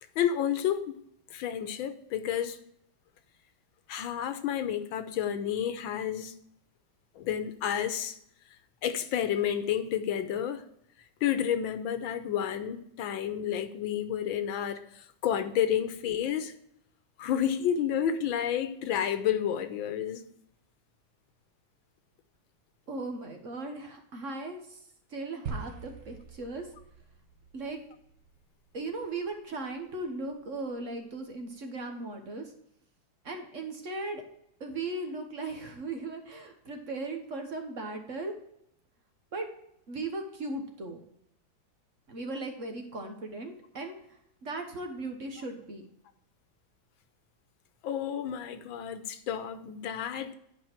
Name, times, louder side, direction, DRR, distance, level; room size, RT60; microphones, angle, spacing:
voice 1, 0.2-1.0 1.3-2.6 3.9-6.3 7.2-8.2 8.8-10.7 11.2-16.5 17.2-20.2 47.8-50.3, left 9 dB, 90° left, 1.6 m, -30 dB
voice 2, 22.9-24.8 25.1-26.7 27.5-27.8 28.7-32.5 33.2-34.2 34.6-38.3 39.3-39.5 39.9-41.0 42.1-45.9, right 2 dB, 45° right, 1.3 m, -37 dB
sound 1, 25.5-29.8, right 5 dB, 65° right, 1.8 m, -44 dB
10.5 x 5.0 x 4.5 m
omnidirectional pair, 2.1 m